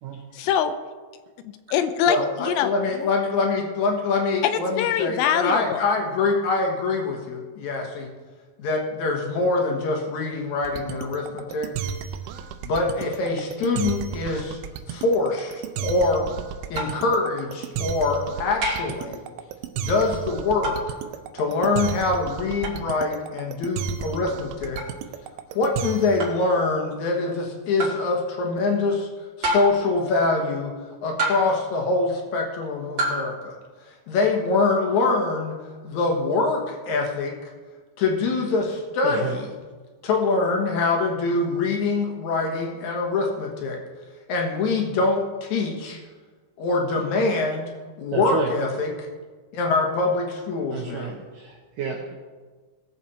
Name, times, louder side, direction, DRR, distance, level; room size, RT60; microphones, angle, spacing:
voice 1, 0.3-0.7 1.4-3.1 4.4-5.8, left 9 dB, 85° left, 10 dB, 2.9 m, -24 dB
voice 2, 2.1-8.1 8.6-11.7 12.6-14.6 14.9-16.3 16.7-19.2 19.8-21.0 21.3-24.8 25.5-29.1 29.4-30.7 31.0-33.5 34.1-35.6 35.8-37.5 38.0-39.5 40.0-43.8 44.3-46.0 46.6-47.7 48.0-48.9 49.5-51.1, left 3 dB, 60° left, 1 dB, 2.1 m, -24 dB
sound 1, 10.6-26.3, right 8 dB, 90° right, 2.9 m, -32 dB
sound 2, 16.7-17.1 18.6-19.0 20.6-20.9 22.6-22.8 24.8-24.9 26.2-26.5 27.8-28.1 29.4-29.9 31.2-31.6 33.0-33.3, right 1 dB, 40° right, 2.1 m, -27 dB
voice 3, 39.0-39.4 48.1-48.5 50.7-52.1, right 5 dB, 75° right, 1 dB, 2.0 m, -30 dB
20.5 x 7.3 x 4.2 m, 1.4 s
omnidirectional pair, 5.0 m